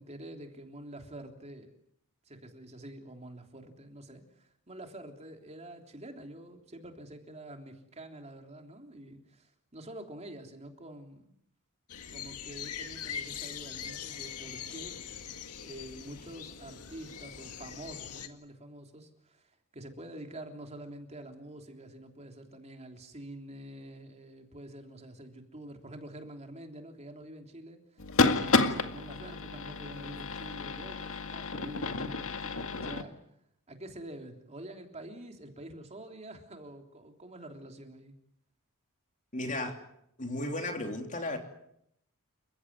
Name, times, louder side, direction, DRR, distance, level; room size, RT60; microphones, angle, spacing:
voice 1, 0.0-1.7 2.3-11.3 12.1-15.0 15.6-33.2 33.7-38.1, right 1 dB, 30° right, 4 dB, 3.4 m, -47 dB
sound 1, 11.9-18.3, left 8 dB, 90° left, 2.0 m, -42 dB
sound 2, 28.0-33.0, left 3 dB, 65° left, 2.0 m, -30 dB
voice 2, 39.3-39.8 40.2-41.4, left 1 dB, 35° left, 4 dB, 3.3 m, -34 dB
29.5 x 16.0 x 9.6 m, 0.76 s
head